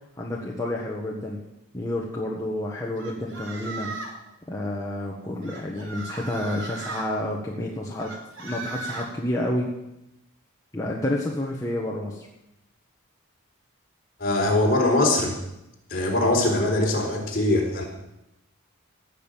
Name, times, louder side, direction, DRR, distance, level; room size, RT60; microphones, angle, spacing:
voice 1, 0.2-1.4 1.7-3.9 4.5-8.1 8.4-9.7 10.7-12.3, left 1 dB, 15° left, -2 dB, 1.6 m, -29 dB
sound 1, 3.0-4.2 5.4-7.1 8.0-9.1, right 3 dB, 65° right, 3.1 m, -36 dB
voice 2, 14.2-15.4 15.9-17.8, left 2 dB, 45° left, -1 dB, 4.0 m, -22 dB
16.5 x 6.7 x 9.2 m, 0.89 s
head